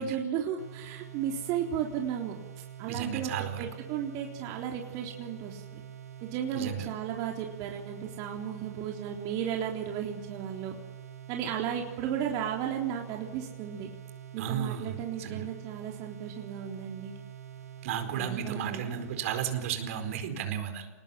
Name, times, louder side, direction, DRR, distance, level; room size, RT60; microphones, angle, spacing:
voice 1, 0.0-5.8 6.2-10.8 11.3-13.9 14.3-17.2 18.1-18.9, right 8 dB, 45° right, 1 dB, 3.8 m, -34 dB
sound 1, 0.6-20.2, right 10 dB, 85° right, 5.2 m, -46 dB
voice 2, 2.9-3.7 6.5-6.9 14.4-15.5 17.8-20.9, right 8 dB, 60° right, 8 dB, 4.5 m, -34 dB
28.5 x 20.0 x 7.2 m, 1.1 s
hypercardioid pair, 115°, 8 cm